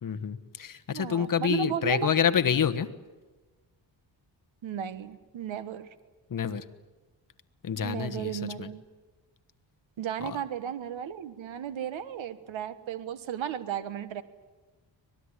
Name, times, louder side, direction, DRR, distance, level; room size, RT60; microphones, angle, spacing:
voice 1, 0.0-2.9 6.3-6.6 7.6-8.3 8.6-8.7 10.2-10.4, left 8 dB, 45° left, 9 dB, 1.3 m, -27 dB
voice 2, 0.9-2.1 4.6-5.9 7.8-8.8 10.0-14.2, right 9 dB, 90° right, 12 dB, 1.4 m, -34 dB
25.0 x 19.5 x 9.9 m, 1.2 s
wide cardioid pair, 135°, 45 cm